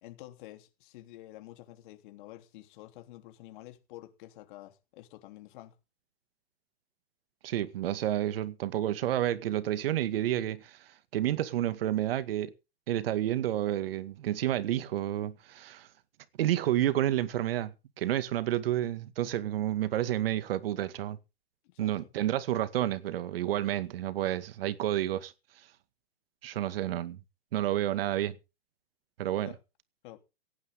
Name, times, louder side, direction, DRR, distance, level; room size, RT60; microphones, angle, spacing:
voice 1, 0.0-5.7 21.6-22.1 29.4-29.6 30.0-30.2, left 16 dB, 55° left, 3.4 m, -49 dB
voice 2, 7.4-12.5 12.9-15.9 16.4-17.7 18.0-21.2 21.8-25.3 26.4-27.2 27.5-28.4 29.2-29.5, right 12 dB, 65° right, 2.1 m, -30 dB
18.0 x 17.0 x 3.8 m
hypercardioid pair, 140°, 31 cm